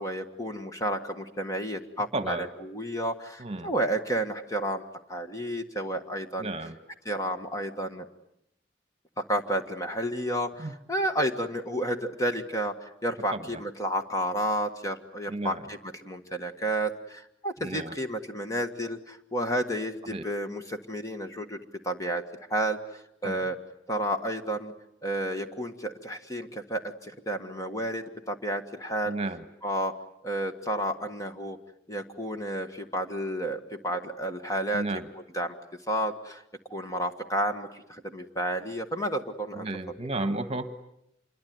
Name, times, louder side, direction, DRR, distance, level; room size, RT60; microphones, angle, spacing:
voice 1, 0.0-4.8 5.1-6.5 7.0-8.0 9.2-23.6 23.9-24.7 25.0-29.1 29.6-29.9 30.2-31.6 31.9-34.8 35.3-35.5 35.9-36.4 36.7-39.7, right 1 dB, 15° left, 6 dB, 1.6 m, -31 dB
voice 2, 2.1-2.5 3.4-3.7 6.4-6.8 10.6-10.7 13.3-13.6 15.3-15.6 17.6-18.0 20.1-20.2 23.2-23.3 29.1-29.4 34.7-35.1 39.5-40.7, right 2 dB, 35° right, 10 dB, 1.5 m, -33 dB
27.0 x 22.5 x 9.5 m, 0.80 s
head